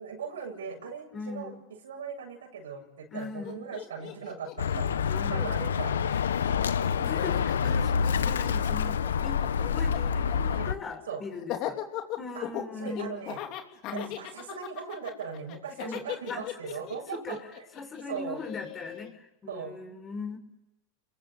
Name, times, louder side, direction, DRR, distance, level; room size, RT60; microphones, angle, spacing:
voice 1, 0.0-1.5 1.8-5.0 5.3-6.9 10.5-10.7 11.1-11.2 12.3-12.5 12.8-13.4 13.9-17.6 18.1-18.4 19.5-19.7, right 6 dB, 85° right, 3 dB, 7.6 m, -39 dB
voice 2, 1.1-1.6 3.1-3.7 4.7-5.5 6.5-11.8 12.2-13.2 13.9-14.1 15.8-16.0 16.3-16.6 17.1-17.4 17.7-20.4, left 4 dB, 25° left, 6 dB, 6.0 m, -40 dB
Laughter, 3.1-3.2 3.4-5.8 6.1-19.1, left 12 dB, 50° left, 3.2 m, -39 dB
Bird, 4.6-10.7, left 7 dB, 90° left, 0.9 m, -27 dB
30.0 x 22.0 x 8.8 m, 0.89 s
hypercardioid pair, 110°, 0 cm